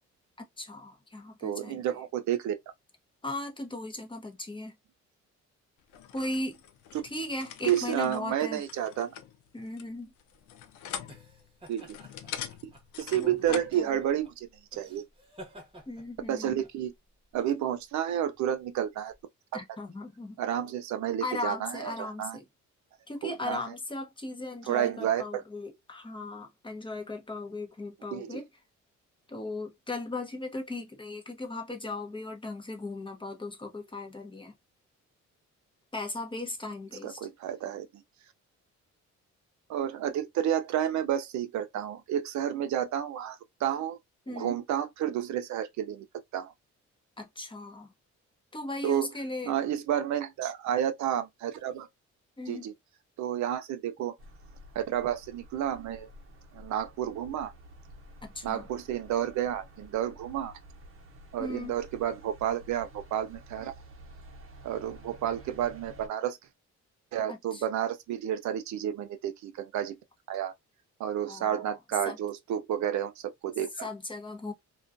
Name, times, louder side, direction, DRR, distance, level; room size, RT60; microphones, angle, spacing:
voice 1, 0.6-1.8 3.2-4.7 6.1-6.6 7.0-8.6 9.5-10.1 13.2-14.0 15.9-16.6 19.5-20.4 21.2-22.4 23.1-28.5 29.3-34.5 35.9-37.2 44.3-44.6 47.2-47.9 48.5-49.5 52.4-52.7 58.2-58.6 61.4-61.8 67.3-67.6 71.3-71.8 72.0-72.2 73.8-74.5, left 2 dB, 15° left, 0.7 m, -37 dB
voice 2, 1.4-2.5 6.9-7.0 7.6-9.1 11.7-12.0 12.6-12.7 13.0-15.0 16.3-16.9 17.3-19.1 20.4-22.4 23.2-23.6 24.7-25.4 28.1-28.4 37.0-38.0 39.7-44.0 44.3-46.1 46.3-46.5 48.8-49.1 49.4-51.9 52.5-52.7 53.2-54.1 54.7-56.1 56.5-57.5 58.4-60.5 61.3-63.7 64.6-66.4 67.1-70.0 70.3-70.5 71.0-73.9, right 10 dB, 70° right, 0.5 m, -31 dB
sound 1, 5.9-13.8, left 10 dB, 80° left, 0.5 m, -44 dB
sound 2, 10.0-19.2, right 1 dB, 15° right, 1.0 m, -53 dB
sound 3, 54.2-66.1, equal, 45° right, 0.8 m, -51 dB
2.4 x 2.2 x 2.5 m
cardioid pair, 90°, 30 cm